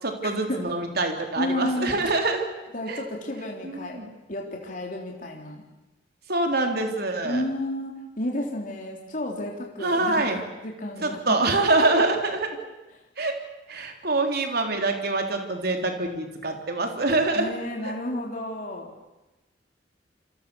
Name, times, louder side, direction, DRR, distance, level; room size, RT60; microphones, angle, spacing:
voice 1, 0.0-2.5 2.9-3.1 3.6-4.1 6.3-7.4 9.8-10.4 11.0-12.5 13.2-13.4 13.7-17.5, right 2 dB, 60° right, 4 dB, 3.7 m, -25 dB
voice 2, 1.4-2.0 2.7-4.0 4.3-5.6 7.2-11.2 17.3-18.9, left 1 dB, 45° left, 0 dB, 3.7 m, -31 dB
28.5 x 24.5 x 7.1 m, 1.0 s
head